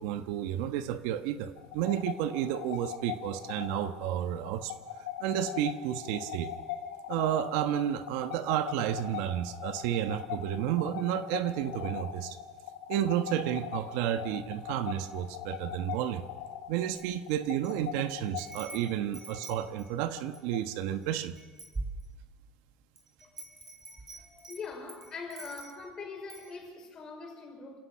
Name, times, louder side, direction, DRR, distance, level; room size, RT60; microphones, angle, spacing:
voice 1, 0.0-4.7 5.2-6.5 7.1-12.4 12.9-16.2 16.7-21.3, right 11 dB, 75° right, 10 dB, 1.2 m, -31 dB
sound 1, 1.6-20.9, left 10 dB, 85° left, 7.2 m, -41 dB
Wind chime, 16.9-17.8 18.1-20.5 21.0-21.1 21.4-22.5 23.0-25.9 26.3-26.5, right 2 dB, 15° right, 3.3 m, -44 dB
voice 2, 23.9-27.8, left 4 dB, 30° left, 2 dB, 5.4 m, -43 dB
28.5 x 16.5 x 5.7 m, 1.3 s
supercardioid pair, 120°, 2 cm